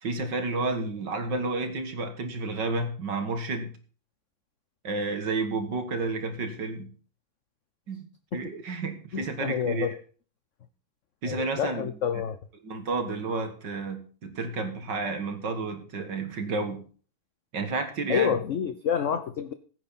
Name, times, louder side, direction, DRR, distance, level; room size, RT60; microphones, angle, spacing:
voice 1, 0.0-3.7 4.8-6.9 7.9-8.1 8.3-9.9 11.2-11.9 12.6-16.8 17.5-18.3, right 3 dB, 65° right, 6 dB, 2.4 m, -31 dB
voice 2, 9.1-10.0 11.2-12.4 18.1-19.5, left 8 dB, 60° left, 11 dB, 0.8 m, -28 dB
16.0 x 9.0 x 4.2 m, 0.40 s
omnidirectional pair, 2.1 m